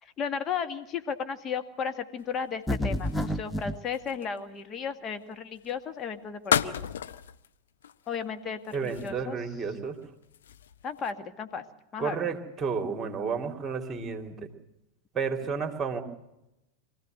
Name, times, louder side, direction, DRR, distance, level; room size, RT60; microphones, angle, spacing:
voice 1, 0.0-6.8 8.1-9.4 10.8-11.6 11.9-12.2, left 6 dB, 25° left, 7 dB, 1.8 m, -34 dB
sound 1, 2.2-4.6 5.5-5.8 6.4-7.5 7.8-8.2 8.6-9.4 9.9-11.1, left 9 dB, 60° left, 0.8 m, -33 dB
sound 2, 2.7-3.8, left 1 dB, 5° left, 0.9 m, -29 dB
voice 2, 8.7-10.0 12.0-14.5 15.1-16.0, right 5 dB, 20° right, 5 dB, 2.9 m, -31 dB
24.0 x 15.5 x 7.8 m, 0.90 s
figure-of-eight pair, 90°, 0 cm